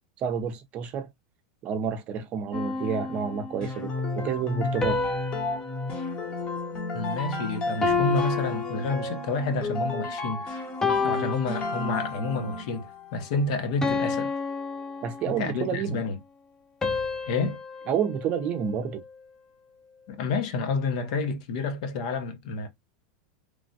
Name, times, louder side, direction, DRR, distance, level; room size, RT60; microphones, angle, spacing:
voice 1, 0.2-1.1 1.6-5.0 15.0-16.0 17.9-19.0, right 7 dB, 35° right, 0.6 m, -29 dB
sound 1, 2.5-3.8 4.8-7.3 7.8-9.5 10.1-10.3 10.8-12.4 12.8-13.1 13.8-15.7 16.8-19.2, left 4 dB, 15° left, 0.4 m, -31 dB
sound 2, 3.6-12.8, left 2 dB, 30° left, 0.8 m, -32 dB
voice 2, 6.9-10.5 11.0-14.3 15.3-16.2 17.3-17.6 20.1-22.7, left 3 dB, 65° left, 0.7 m, -29 dB
3.2 x 2.1 x 2.6 m
supercardioid pair, 140°, 4 cm